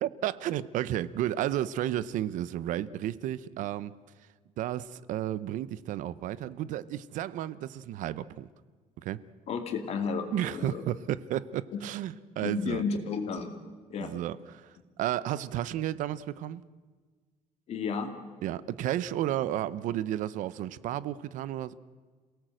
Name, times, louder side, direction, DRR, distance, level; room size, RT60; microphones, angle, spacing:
voice 1, 0.0-3.9 4.6-8.5 9.0-9.2 10.3-12.8 14.0-14.7 15.0-16.6 18.4-21.7, right 12 dB, 80° right, 0.8 m, -32 dB
voice 2, 9.5-10.8 11.7-11.8 12.4-13.5 13.9-14.1 17.7-18.1, left 5 dB, 55° left, 2.5 m, -32 dB
28.5 x 17.5 x 7.7 m
cardioid pair, 155°, 13 cm